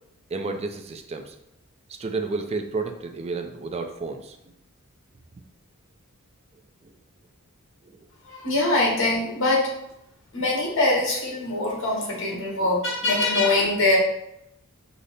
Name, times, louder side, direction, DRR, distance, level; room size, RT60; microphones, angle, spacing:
voice 1, 0.3-1.3 2.0-4.4, right 3 dB, 30° right, 5 dB, 0.4 m, -31 dB
voice 2, 8.3-9.6 10.3-14.0, left 2 dB, 60° left, -2 dB, 1.3 m, -23 dB
5.0 x 2.0 x 4.1 m, 0.81 s
head